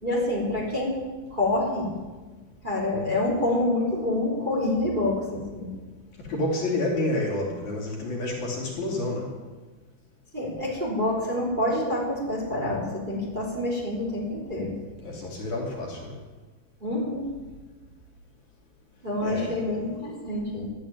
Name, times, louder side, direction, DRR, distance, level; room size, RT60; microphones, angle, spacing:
voice 1, 0.0-1.0 1.3-1.9 2.6-5.7 10.3-14.8 16.8-17.3 19.0-20.7, left 1 dB, 15° right, -3 dB, 3.2 m, -27 dB
voice 2, 6.3-9.3 15.0-16.1 19.2-19.6, left 2 dB, 55° left, -2 dB, 3.9 m, -29 dB
13.0 x 9.6 x 10.0 m, 1.3 s
omnidirectional pair, 4.2 m